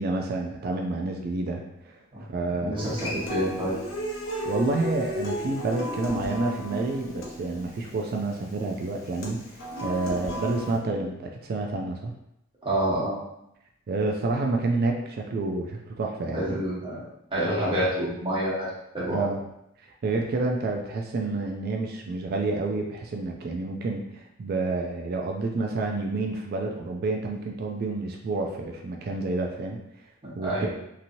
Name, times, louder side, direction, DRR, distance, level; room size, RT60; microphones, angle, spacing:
voice 1, 0.0-2.0 2.3-2.9 4.5-9.4 9.8-12.1 13.9-16.6 19.1-19.4 20.0-29.8 30.4-30.7, right 3 dB, 50° right, 1 dB, 0.3 m, -29 dB
voice 2, 2.6-3.7 12.6-13.1 16.3-17.0 17.3-18.7 18.9-19.3 30.4-30.7, right 1 dB, 25° right, -8 dB, 1.1 m, -27 dB
Human voice / Acoustic guitar, 2.8-10.8, equal, 80° left, 0.7 m, -35 dB
2.9 x 2.7 x 2.6 m, 0.81 s
head